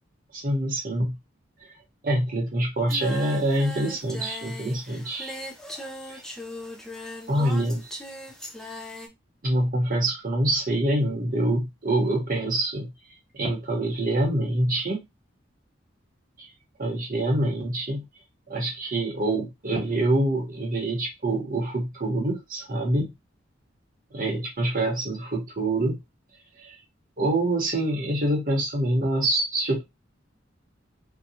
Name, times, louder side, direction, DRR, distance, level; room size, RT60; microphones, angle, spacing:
voice 1, 0.3-1.1 1.6-1.7 2.0-5.4 6.1-6.2 7.3-7.9 9.4-12.9 13.3-15.0 16.4-16.5 16.8-18.0 18.5-23.1 24.1-26.0 26.6-26.7 27.2-29.8, right 1 dB, 50° right, 0.9 m, -25 dB
Singing, 2.9-9.1, left 1 dB, 5° left, 0.4 m, -39 dB
2.7 x 2.2 x 2.7 m
head